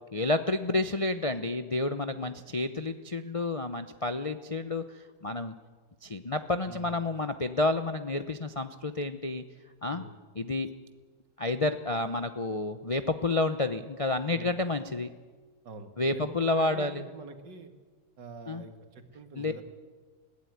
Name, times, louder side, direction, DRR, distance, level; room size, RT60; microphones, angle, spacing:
voice 1, 0.1-5.5 6.0-9.4 9.8-10.0 10.4-10.7 11.4-15.1 16.0-17.0 18.5-18.6 19.4-19.5, left 2 dB, 55° left, 8 dB, 0.3 m, -30 dB
voice 2, 6.6-7.1 9.9-10.1 14.3-14.5 15.6-17.7 18.2-19.6, right 3 dB, 75° right, 7 dB, 2.4 m, -45 dB
21.0 x 16.0 x 9.4 m, 1.4 s
omnidirectional pair, 1.9 m